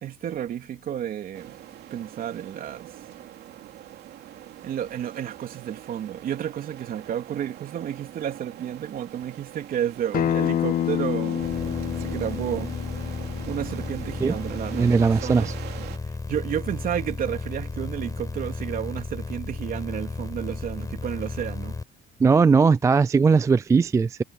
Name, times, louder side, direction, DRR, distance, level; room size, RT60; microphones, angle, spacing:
voice 1, 0.0-1.6 1.9-2.9 4.6-11.5 12.0-12.7 13.5-15.5 16.3-21.8, right 10 dB, 55° right, 3.4 m, -31 dB
sound 1, 1.3-16.0, right 13 dB, 75° right, 3.0 m, -43 dB
Acoustic guitar, 10.1-15.3, left 10 dB, 55° left, 1.7 m, -29 dB
sound 2, 11.4-21.8, left 3 dB, 20° left, 5.9 m, -34 dB
voice 2, 14.7-15.5 22.2-24.2, right 5 dB, 20° right, 0.3 m, -19 dB
cardioid pair, 110°, 17 cm